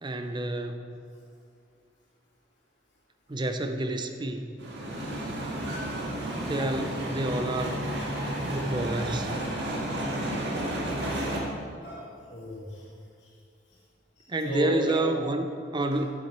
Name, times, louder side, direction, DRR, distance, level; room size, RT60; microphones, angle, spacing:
voice 1, 0.0-0.8 3.3-4.6 6.3-7.8 8.5-9.4 14.3-16.1, right 2 dB, 25° right, 6 dB, 0.5 m, -29 dB
sound 1, 4.6-11.4, right 1 dB, 70° right, 1.8 m, -32 dB
voice 2, 11.0-11.3 11.8-12.8 14.4-15.2, equal, 75° left, -5 dB, 2.8 m, -35 dB
10.5 x 7.7 x 4.3 m, 2.3 s
head